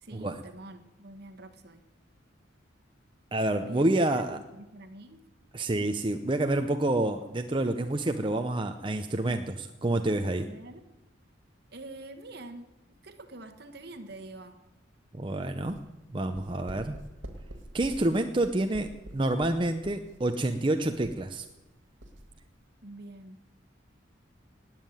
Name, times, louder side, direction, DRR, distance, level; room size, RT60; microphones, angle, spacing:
voice 1, 0.0-1.8 3.6-5.2 10.4-10.8 11.7-12.7 13.0-14.6 22.8-23.4, right 2 dB, 55° right, 7 dB, 1.4 m, -46 dB
voice 2, 3.3-4.4 5.5-10.5 15.1-15.8 16.1-17.0 17.7-21.4, right 1 dB, 25° right, 6 dB, 0.6 m, -28 dB
sound 1, 15.6-21.7 22.0-22.4, right 1 dB, 75° right, 1.9 m, -47 dB
18.5 x 7.5 x 9.1 m, 1.0 s
head